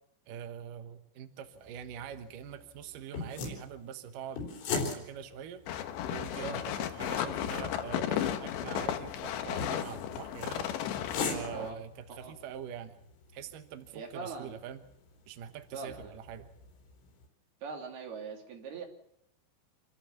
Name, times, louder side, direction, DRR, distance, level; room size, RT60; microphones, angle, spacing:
voice 1, 0.3-5.6 6.1-10.7 11.3-13.0 13.3-14.8 15.3-16.5, right 9 dB, 75° right, 8 dB, 2.0 m, -44 dB
sound 1, 1.4-17.3, left 4 dB, 85° left, 6.6 m, -42 dB
sound 2, 5.7-11.7, left 10 dB, 70° left, 3.3 m, -34 dB
voice 2, 13.9-14.6 15.7-16.1 17.6-18.9, right 4 dB, 55° right, 2 dB, 4.7 m, -41 dB
27.5 x 14.0 x 7.3 m, 0.75 s
omnidirectional pair, 5.7 m